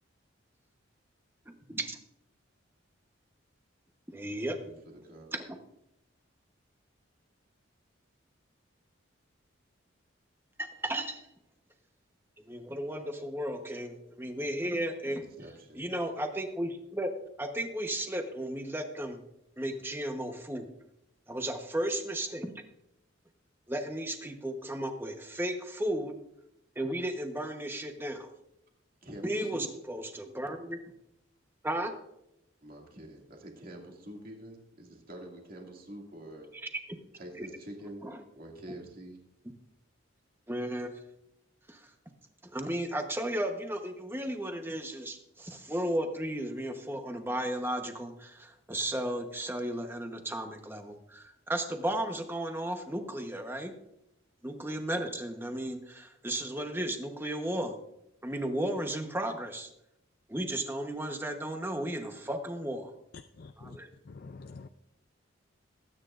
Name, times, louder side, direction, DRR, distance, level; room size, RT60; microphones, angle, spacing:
voice 1, 1.5-2.0 4.1-4.6 5.3-5.6 10.6-11.2 12.5-15.3 15.7-17.1 17.4-19.2 19.6-20.7 21.3-22.6 23.7-26.1 26.8-28.3 29.2-30.8 31.6-31.9 37.4-37.5 38.0-38.2 40.5-41.0 41.7-41.8 42.5-53.7 54.4-57.8 58.2-59.7 60.3-62.9 63.6-63.9, right 1 dB, 10° right, 5 dB, 1.0 m, -34 dB
voice 2, 4.6-5.3 15.4-15.9 29.0-29.7 32.6-36.5 37.1-38.1 38.4-39.2, right 1 dB, 45° right, 0 dB, 2.3 m, -46 dB
voice 3, 63.4-63.8 64.1-64.7, left 3 dB, 50° left, 8 dB, 0.4 m, -46 dB
21.0 x 9.2 x 2.5 m, 0.84 s
head